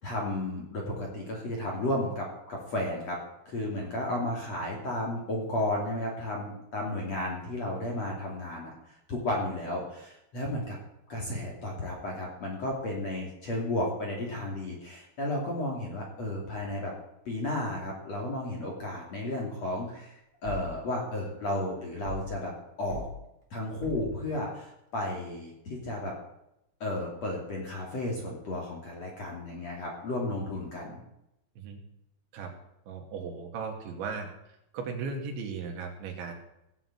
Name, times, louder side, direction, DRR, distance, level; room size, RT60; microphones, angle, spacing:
voice 1, 0.0-3.2 3.4-10.8 11.1-16.9 17.2-20.2 20.4-22.5 22.8-23.1 23.5-26.1 26.8-31.0, left 1 dB, 40° left, -2 dB, 3.3 m, -33 dB
sound 1, 20.4-20.8 22.0-22.4 22.9-23.2 23.8-24.2, left 1 dB, 40° right, 3.3 m, -40 dB
voice 2, 32.9-34.3 34.7-36.3, right 5 dB, 70° right, 2 dB, 4.6 m, -36 dB
18.0 x 7.9 x 8.0 m, 0.83 s
omnidirectional pair, 5.6 m